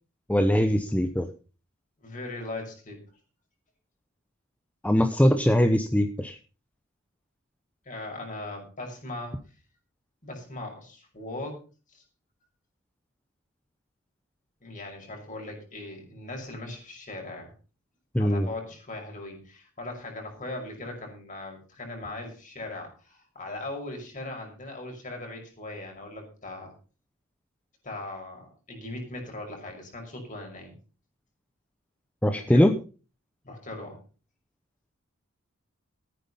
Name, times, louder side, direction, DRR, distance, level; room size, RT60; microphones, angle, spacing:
voice 1, 0.3-1.3 4.8-6.4 18.1-18.5 32.2-32.7, equal, 5° left, 8 dB, 0.8 m, -21 dB
voice 2, 2.0-3.0 7.9-9.3 10.2-11.6 11.9-12.0 14.6-17.5 18.1-26.7 27.8-30.7 32.2-32.7 33.4-34.0, left 2 dB, 40° left, 2 dB, 6.0 m, -39 dB
14.5 x 9.5 x 5.5 m, 0.36 s
head